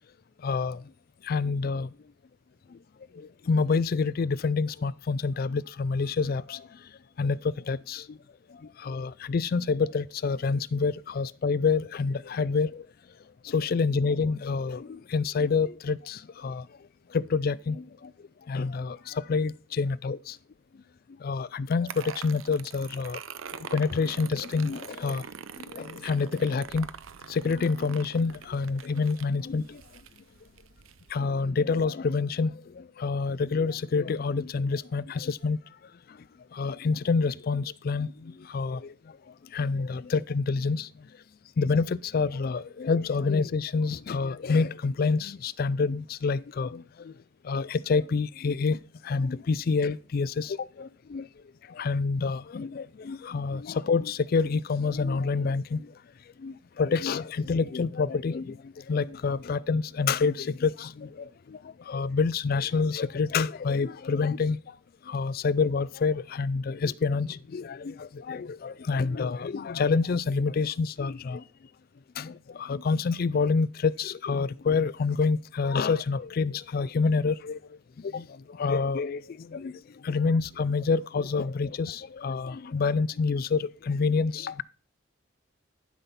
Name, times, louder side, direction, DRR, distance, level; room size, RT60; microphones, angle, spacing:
voice 1, 0.4-0.8 1.2-1.9 3.2-6.6 7.2-7.4 7.7-8.2 8.8-12.8 13.4-16.6 17.1-17.9 18.5-20.2 21.2-23.2 23.5-25.2 25.7-26.9 27.3-29.8 31.1-35.6 36.5-38.9 39.5-40.9 41.6-47.1 47.4-48.8 49.0-51.3 51.8-55.9 56.4-58.6 58.9-61.6 61.9-64.6 65.1-71.4 72.2-77.6 78.0-78.2 78.6-79.7 80.0-84.6, left 4 dB, 45° left, 0.3 m, -27 dB
sound 1, 21.9-31.1, right 7 dB, 80° right, 0.6 m, -44 dB
11.0 x 5.8 x 4.1 m
head